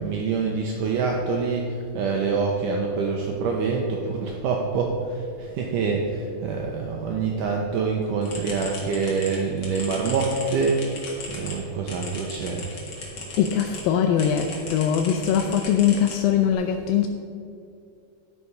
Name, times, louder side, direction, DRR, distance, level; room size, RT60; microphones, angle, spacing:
voice 1, 0.0-10.8 11.3-12.6, right 4 dB, 85° right, 0 dB, 1.8 m, -26 dB
sound 1, 8.2-13.8 14.2-16.5, left 2 dB, 45° left, 1.7 m, -37 dB
voice 2, 13.4-17.1, left 9 dB, 85° left, 5 dB, 2.0 m, -22 dB
11.0 x 5.9 x 5.5 m, 2.5 s
omnidirectional pair, 4.6 m